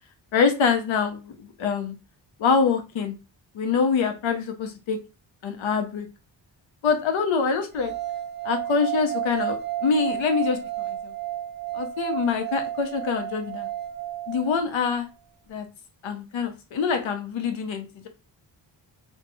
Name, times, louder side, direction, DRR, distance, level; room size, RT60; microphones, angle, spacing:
voice 1, 0.3-1.9 2.4-3.2 3.5-5.0 5.4-6.1 6.8-7.9 8.4-10.6 10.9-11.0 11.7-13.7 14.3-15.1 15.5-15.7 16.0-18.1, left 5 dB, 90° left, 5 dB, 0.7 m, -25 dB
sound 1, 7.8-14.9, right 12 dB, 25° right, 0.4 m, -32 dB
2.7 x 2.2 x 4.0 m, 0.29 s
cardioid pair, 75°, 45 cm